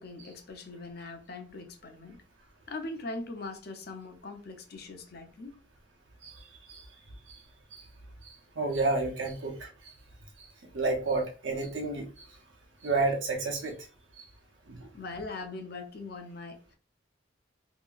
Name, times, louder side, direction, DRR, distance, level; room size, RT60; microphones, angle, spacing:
voice 1, 0.0-2.2 2.7-5.5 14.9-16.8, left 3 dB, 55° left, 0.6 m, -41 dB
voice 2, 8.2-9.9 10.4-10.5 10.7-12.2 12.8-13.8 14.7-14.9, right 3 dB, 80° right, 0.8 m, -31 dB
2.8 x 2.7 x 2.4 m
head